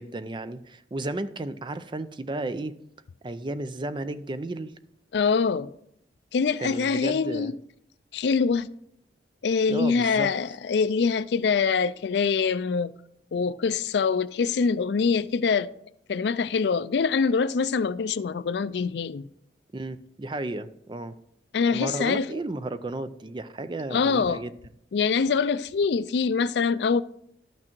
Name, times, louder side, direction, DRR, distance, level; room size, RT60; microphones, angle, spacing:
voice 1, 0.0-2.7 3.2-4.7 6.6-7.5 9.7-10.3 19.7-21.1 21.7-24.5, right 2 dB, 25° right, 0.4 m, -33 dB
voice 2, 5.1-5.7 6.3-7.5 8.1-8.7 9.4-12.9 13.3-15.7 16.1-19.3 21.5-22.3 23.9-24.4 24.9-27.0, left 5 dB, 65° left, 0.4 m, -24 dB
12.0 x 6.1 x 4.4 m
head